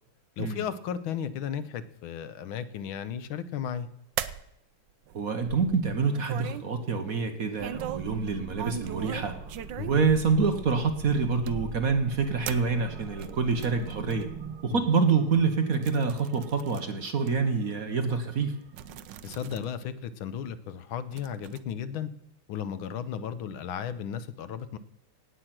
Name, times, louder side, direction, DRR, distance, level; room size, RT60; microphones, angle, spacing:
voice 1, 0.4-3.9 9.8-10.1 14.7-14.9 19.2-22.1 22.5-24.8, left 8 dB, 75° left, 13 dB, 1.5 m, -35 dB
sound 1, 4.2-4.5 5.1-6.7 7.6-8.1 8.5-10.7 11.4-12.0 12.4-14.3 14.9-15.0 15.3-16.9 17.3-17.4 18.3-18.4 18.7-19.6 20.0-20.1 21.1-21.6, right 11 dB, 70° right, 1.1 m, -39 dB
voice 2, 5.1-9.3 9.9-14.3 14.6-18.5, right 5 dB, 50° right, 6 dB, 1.3 m, -26 dB
sound 2, 7.7-19.6, right 5 dB, 90° right, 2.3 m, -44 dB
18.0 x 8.2 x 6.0 m, 0.78 s
omnidirectional pair, 2.4 m